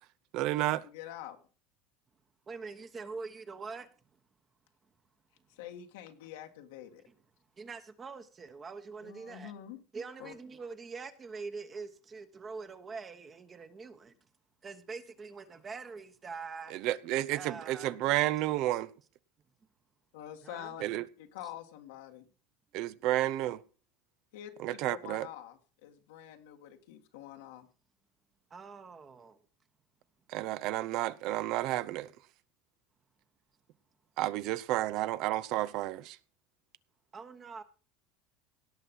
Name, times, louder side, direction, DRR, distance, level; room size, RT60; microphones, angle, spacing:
voice 1, 0.3-0.9 16.7-18.9 20.8-21.0 22.7-23.6 24.6-25.3 30.3-32.1 34.2-36.2, right 15 dB, 60° right, 0.6 m, -31 dB
voice 2, 0.9-1.4 5.6-7.0 9.0-9.8 10.2-10.3 20.1-22.2 24.3-27.7, left 11 dB, 90° left, 1.8 m, -46 dB
voice 3, 2.5-3.9 7.1-7.2 7.6-9.5 9.9-14.1 14.6-16.7 17.3-17.9 20.4-20.7 28.5-29.4 37.1-37.6, right 4 dB, 25° right, 1.1 m, -44 dB
17.5 x 5.8 x 5.4 m
supercardioid pair, 130°, 0 cm